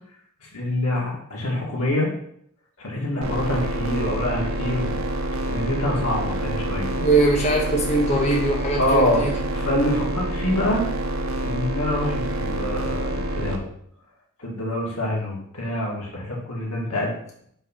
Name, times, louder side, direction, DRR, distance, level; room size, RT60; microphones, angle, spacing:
voice 1, 0.4-2.1 2.8-5.0 5.5-6.9 8.8-10.9 11.4-13.7 14.4-17.2, left 1 dB, 85° left, -2 dB, 1.9 m, -25 dB
sound 1, 3.2-13.6, right 1 dB, 70° right, 0.8 m, -27 dB
voice 2, 6.9-9.3, right 2 dB, 30° left, -2 dB, 1.1 m, -21 dB
5.5 x 3.6 x 5.7 m, 0.70 s
head